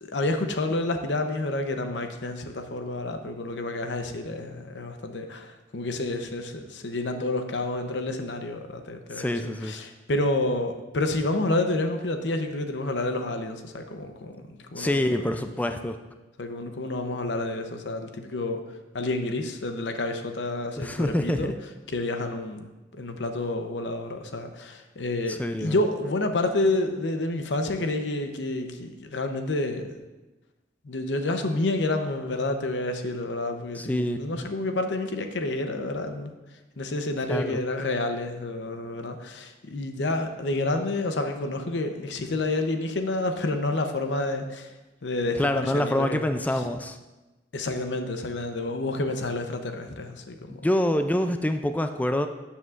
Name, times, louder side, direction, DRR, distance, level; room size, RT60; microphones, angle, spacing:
voice 1, 0.0-9.3 9.6-15.1 16.4-18.6 18.9-21.5 21.9-30.0 30.8-36.3 36.8-44.7 45.0-46.2 47.5-50.6, left 2 dB, 90° left, 6 dB, 0.8 m, -29 dB
voice 2, 9.1-9.7 14.8-16.0 20.8-21.6 25.3-25.8 33.7-34.5 37.3-37.6 45.4-47.0 50.5-52.3, left 1 dB, 10° left, 7 dB, 0.3 m, -26 dB
12.0 x 7.2 x 2.5 m, 1.1 s
head